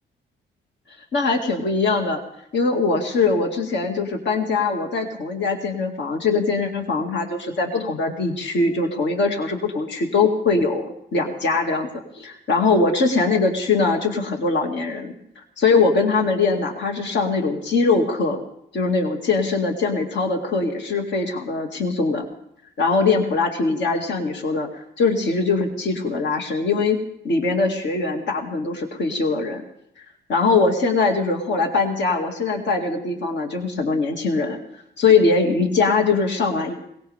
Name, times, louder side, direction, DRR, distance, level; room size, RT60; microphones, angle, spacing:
voice 1, 1.1-2.2 2.5-11.9 12.2-15.1 15.6-18.4 18.7-22.2 22.8-27.0 27.2-29.6 30.0-30.1 30.3-34.6 35.0-36.7, left 4 dB, 65° left, 2 dB, 2.3 m, -21 dB
21.5 x 18.5 x 3.5 m, 0.75 s
cardioid pair, 90°, 20 cm